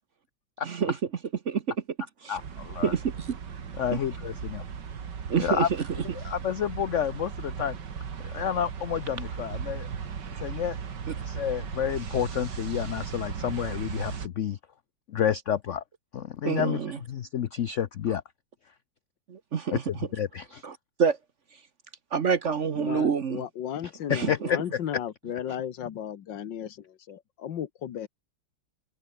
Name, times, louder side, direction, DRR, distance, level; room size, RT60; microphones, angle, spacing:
voice 1, 0.6-0.9 1.5-1.6 2.2-2.4 2.8-3.4 5.3-5.7 16.4-17.0 19.3-19.8 20.6-20.7 21.0-21.2 22.1-23.4 24.1-24.3, right 6 dB, 45° right, 1.1 m, -26 dB
voice 2, 2.3-2.9 3.8-4.6 5.4-5.7 6.1-7.7 8.2-9.9 10.4-10.8 11.2-14.6 15.1-15.8 16.1-16.8 17.1-18.2 19.7-20.6 24.1-24.8, left 9 dB, 60° left, 0.8 m, -29 dB
sound 1, 2.4-14.3, right 7 dB, 70° right, 2.5 m, -37 dB
voice 3, 22.8-28.1, left 9 dB, 80° left, 1.9 m, -35 dB
omnidirectional pair, 2.0 m